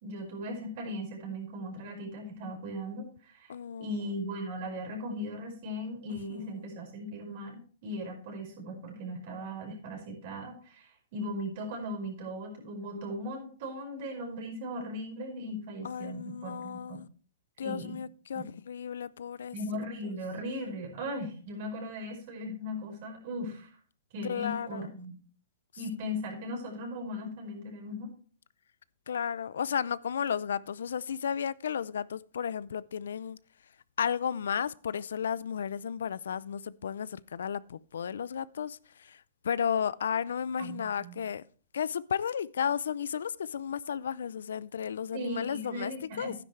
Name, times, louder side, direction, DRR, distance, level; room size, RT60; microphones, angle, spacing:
voice 1, 0.0-3.5 3.8-17.0 17.6-18.0 18.3-18.4 19.5-23.7 24.1-25.1 25.8-28.1 40.6-41.2 45.1-46.4, equal, 50° right, 5.1 m, -38 dB
voice 2, 3.5-4.0 6.1-6.7 15.8-17.1 17.6-19.9 24.2-24.9 29.1-33.4 34.0-41.4 41.7-46.3, left 7 dB, 80° left, 0.4 m, -34 dB
11.5 x 10.0 x 3.2 m
hypercardioid pair, 135°, 0 cm